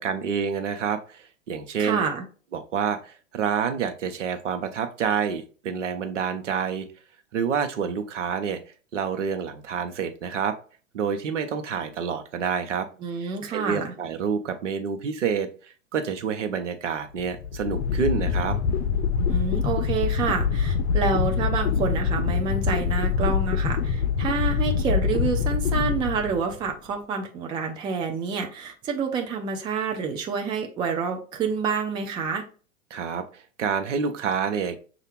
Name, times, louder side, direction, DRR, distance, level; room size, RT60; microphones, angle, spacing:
voice 1, 0.0-2.0 2.5-6.9 7.3-8.6 8.9-10.5 10.9-12.9 13.2-18.6 32.9-34.8, right 6 dB, 65° right, 7 dB, 0.8 m, -28 dB
voice 2, 1.8-2.2 13.0-13.9 19.3-32.4, right 5 dB, 10° right, 3 dB, 0.4 m, -28 dB
sound 1, 17.2-26.7, left 6 dB, 55° left, 0.6 m, -25 dB
6.5 x 2.5 x 3.1 m, 0.38 s
figure-of-eight pair, 95°, 39 cm